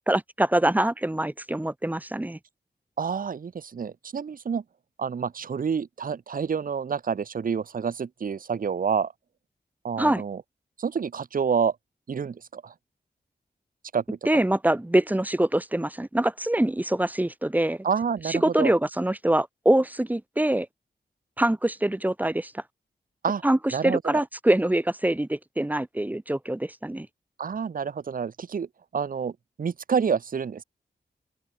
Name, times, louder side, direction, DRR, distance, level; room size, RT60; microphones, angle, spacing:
voice 1, 0.1-2.4 10.0-10.2 14.3-17.9 18.2-20.7 21.4-22.6 23.4-27.1, right 1 dB, 10° right, 0.7 m, -24 dB
voice 2, 3.0-4.6 5.0-9.1 9.8-10.4 10.8-11.7 12.1-12.7 13.9-14.0 17.8-18.7 23.2-23.4 23.7-24.2 27.4-28.7 28.9-29.3 29.6-30.6, right 6 dB, 50° right, 0.8 m, -28 dB
open air
wide cardioid pair, 135°, 18 cm